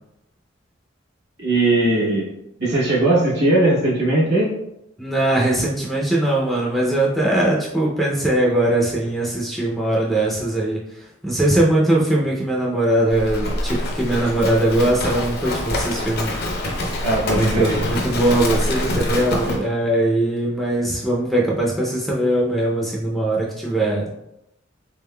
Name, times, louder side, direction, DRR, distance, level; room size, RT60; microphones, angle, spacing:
voice 1, 1.4-2.3 2.6-4.5 17.0-17.8, right 2 dB, 60° right, -4 dB, 1.2 m, -19 dB
voice 2, 5.0-10.8 11.2-16.4 17.3-24.2, right 1 dB, ahead, -4 dB, 0.5 m, -20 dB
Livestock farm animals working animals, 13.1-19.6, left 1 dB, 55° left, 0.7 m, -25 dB
3.6 x 3.6 x 2.2 m, 0.83 s
head